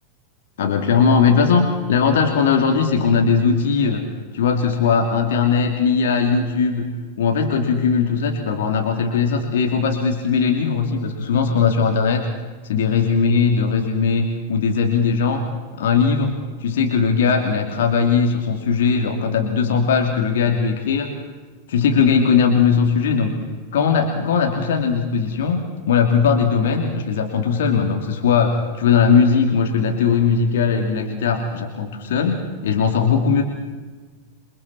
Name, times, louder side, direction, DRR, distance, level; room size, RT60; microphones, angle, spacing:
voice 1, 0.6-4.1 4.3-12.3 12.6-15.5 15.8-21.1 21.7-23.4 23.7-33.4, left 5 dB, 60° left, 3 dB, 2.9 m, -19 dB
28.5 x 25.0 x 4.3 m, 1.3 s
figure-of-eight pair, 90°, 0 cm